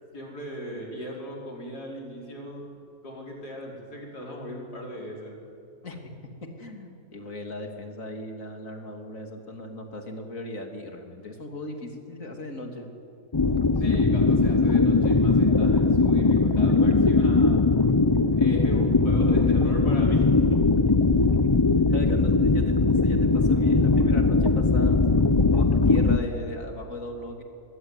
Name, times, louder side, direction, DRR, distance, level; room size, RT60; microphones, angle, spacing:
voice 1, 0.1-2.7 3.0-5.4 13.8-17.6 18.4-20.4, equal, 85° left, -1 dB, 5.6 m, -38 dB
voice 2, 5.8-12.9 21.3-25.0 25.5-27.4, left 1 dB, 55° left, 3 dB, 3.3 m, -38 dB
sound 1, 13.3-26.2, left 3 dB, 25° left, 0.5 m, -20 dB
23.0 x 22.5 x 9.7 m, 2.4 s
omnidirectional pair, 1.7 m